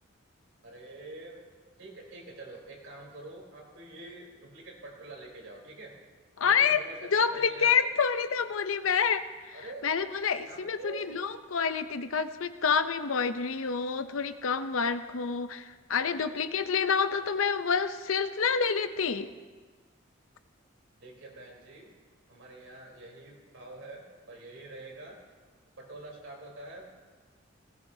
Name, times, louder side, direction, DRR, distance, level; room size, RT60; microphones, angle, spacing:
voice 1, 0.6-1.4 1.8-6.0 6.4-7.7 9.5-9.9 10.5-11.1 21.0-21.9 22.3-25.2 25.8-26.9, right 2 dB, 80° right, -2 dB, 3.7 m, -46 dB
voice 2, 6.4-6.8 7.1-9.6 9.8-19.3, left 6 dB, 90° left, 11 dB, 0.7 m, -28 dB
18.5 x 16.5 x 2.8 m, 1.4 s
head